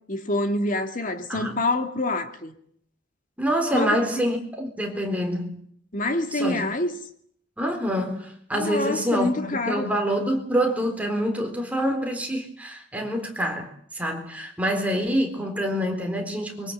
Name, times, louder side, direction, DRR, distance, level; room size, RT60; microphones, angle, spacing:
voice 1, 0.1-2.5 3.7-4.0 5.9-7.0 8.5-10.0, left 2 dB, 45° left, 2.4 m, -26 dB
voice 2, 3.4-5.5 6.3-6.6 7.6-16.7, equal, 10° right, 3.9 m, -26 dB
24.0 x 23.5 x 7.9 m
head